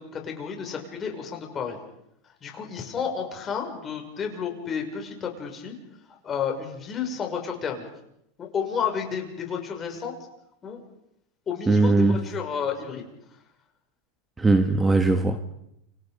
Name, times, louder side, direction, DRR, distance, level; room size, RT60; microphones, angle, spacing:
voice 1, 0.0-1.8 2.4-5.7 6.2-7.9 8.4-10.1 10.6-10.8 11.5-13.1, left 7 dB, 25° left, 2 dB, 6.4 m, -31 dB
voice 2, 11.7-12.2 14.4-15.5, right 2 dB, 10° right, 8 dB, 1.5 m, -20 dB
29.5 x 26.5 x 5.3 m, 0.79 s
supercardioid pair, 135°, 0 cm